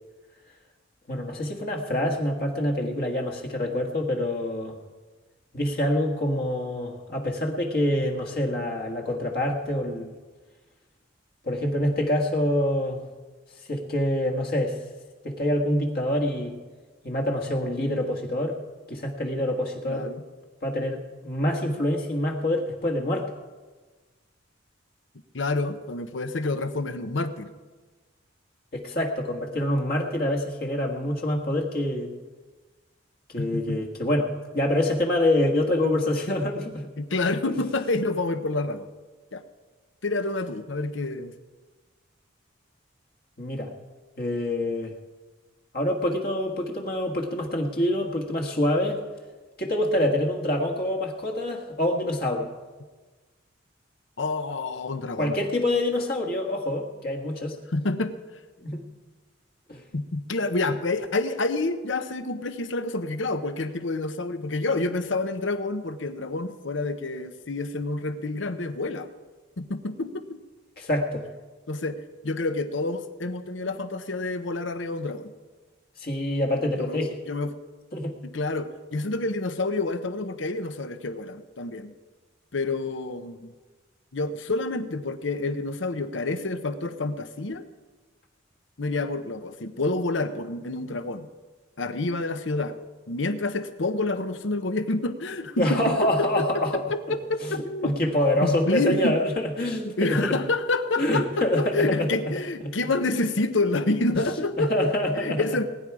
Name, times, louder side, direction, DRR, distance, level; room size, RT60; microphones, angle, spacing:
voice 1, 1.1-4.8 5.5-10.1 11.4-13.0 13.7-14.8 15.2-16.5 17.0-18.6 18.9-20.1 20.6-23.3 28.7-32.1 33.3-36.9 37.5-37.6 43.4-43.7 44.2-44.9 45.7-49.0 49.6-52.5 55.2-57.6 58.6-58.8 59.7-59.8 70.8-71.2 76.0-77.2 77.9-78.1 95.6-96.8 97.4-100.4 101.0-102.1 102.6-102.7 104.6-105.6, left 1 dB, 50° left, 1 dB, 1.6 m, -26 dB
voice 2, 19.9-20.2 25.3-27.5 33.4-33.8 37.0-38.9 39.3-39.4 40.0-41.3 54.2-55.4 57.7-58.2 59.9-69.1 69.6-70.4 71.7-72.0 72.2-75.3 76.8-77.5 78.2-81.9 82.5-83.5 84.1-87.7 88.8-91.3 91.8-92.8 93.1-97.9 98.4-99.2 99.8-105.6, left 2 dB, 70° left, 10 dB, 0.9 m, -28 dB
20.0 x 10.0 x 4.8 m, 1.3 s
head